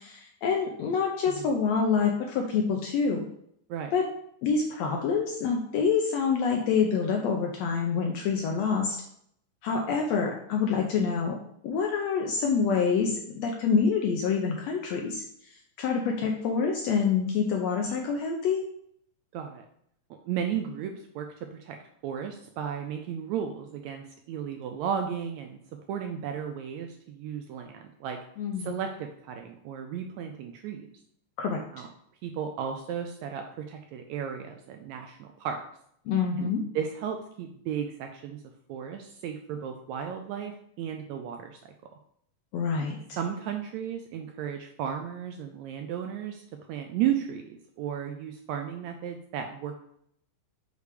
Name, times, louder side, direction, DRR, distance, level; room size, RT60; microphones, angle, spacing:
voice 1, 0.0-3.3 3.9-4.1 4.4-9.0 9.6-11.4 11.6-15.5 15.8-18.6 28.4-28.8 31.4-31.6 36.1-36.6 42.5-43.0, left 5 dB, 80° left, 1 dB, 1.6 m, -26 dB
voice 2, 19.3-19.6 20.2-21.8 22.0-25.6 25.9-28.2 28.6-30.9 31.7-31.9 32.2-35.6 36.4-38.4 38.7-41.6 42.8-42.9 43.2-49.9, right 8 dB, 80° right, 5 dB, 1.7 m, -34 dB
6.5 x 3.3 x 5.0 m, 0.69 s
omnidirectional pair, 3.6 m